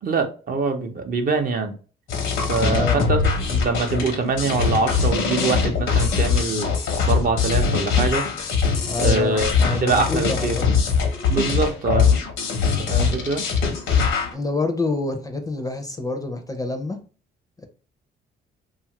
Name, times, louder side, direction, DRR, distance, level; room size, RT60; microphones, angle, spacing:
voice 1, 0.0-1.7 2.5-3.2 3.5-6.7 7.1-8.3 9.0-9.5 9.8-10.6 11.3-12.1 12.8-13.4, right 4 dB, 45° right, 0.6 m, -24 dB
sound 1, 2.1-14.3, left 5 dB, 80° left, 0.8 m, -22 dB
voice 2, 8.8-10.7 12.9-13.2 14.3-17.0 17.6-17.7, left 3 dB, 20° left, 0.5 m, -27 dB
2.7 x 2.4 x 2.8 m
cardioid pair, 90°, 20 cm